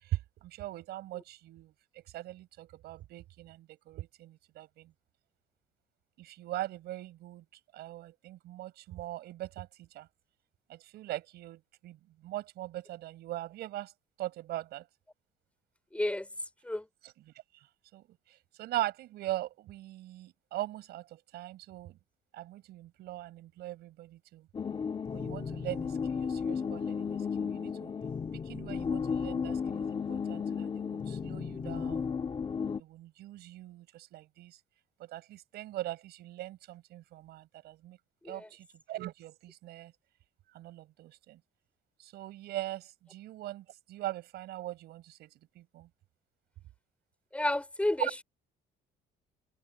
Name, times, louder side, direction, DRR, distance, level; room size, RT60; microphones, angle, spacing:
voice 1, 0.0-1.7 2.1-4.9 6.2-7.4 7.7-10.1 10.7-12.0 12.2-13.9 14.2-14.8 17.0-17.1 17.9-21.9 22.3-24.4 25.1-27.9 28.4-32.1 32.8-34.6 35.1-38.0 38.3-39.9 40.5-41.4 42.0-45.3 45.5-45.9 48.0-48.1, right 15 dB, 75° right, 5.0 m, -41 dB
voice 2, 15.9-16.3 16.6-16.8 38.2-38.5 47.3-48.1, left 1 dB, 5° left, 5.0 m, -31 dB
sound 1, 24.5-32.8, left 6 dB, 30° left, 1.8 m, -34 dB
open air
cardioid pair, 110°, 17 cm